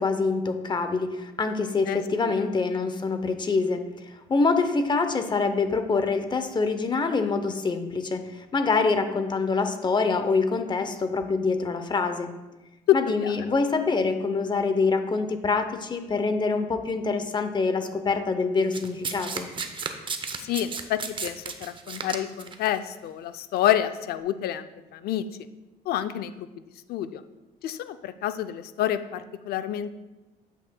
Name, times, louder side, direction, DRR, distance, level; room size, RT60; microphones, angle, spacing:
voice 1, 0.0-12.3 12.9-19.5, left 4 dB, 25° left, 8 dB, 0.7 m, -25 dB
Domestic sounds home sounds, 18.7-22.7 23.6-23.7, right 5 dB, 30° right, 0.7 m, -33 dB
voice 2, 20.4-24.6 24.9-25.2 25.9-26.5 26.9-27.2 27.6-29.9, left 12 dB, 65° left, 11 dB, 0.5 m, -28 dB
9.0 x 7.7 x 2.2 m, 1.1 s
cardioid pair, 110°, 17 cm